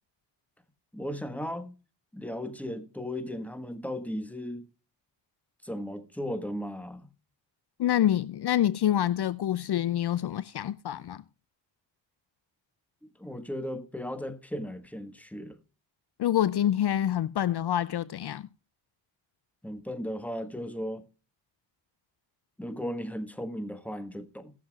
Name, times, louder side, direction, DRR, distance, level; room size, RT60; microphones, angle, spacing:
voice 1, 0.9-1.7 2.1-4.7 5.6-7.1 13.0-15.6 19.6-21.1 22.6-24.5, equal, 5° left, 1.5 m, -36 dB
voice 2, 7.8-11.2 16.2-18.5, left 11 dB, 60° left, 0.5 m, -26 dB
19.0 x 7.2 x 2.4 m
cardioid pair, 40°, 45 cm